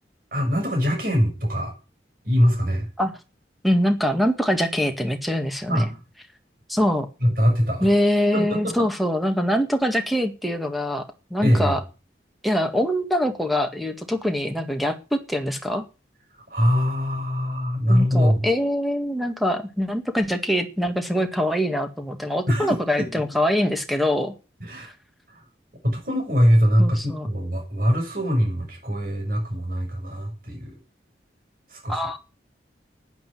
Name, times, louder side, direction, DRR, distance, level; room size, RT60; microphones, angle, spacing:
voice 1, 0.3-1.7 2.2-2.9 5.7-6.0 7.2-7.9 8.3-8.9 11.4-11.8 16.5-18.5 22.5-23.2 24.6-24.9 25.3-25.4 25.8-30.8 31.7-32.1, equal, 55° right, 3 dB, 6.7 m, -22 dB
voice 2, 3.6-5.8 6.7-7.1 7.8-11.1 11.3-11.8 12.4-15.9 17.9-24.3 24.8-24.9 26.8-27.3 31.9-32.2, equal, ahead, 6 dB, 1.7 m, -23 dB
10.5 x 9.5 x 9.2 m, 0.33 s
head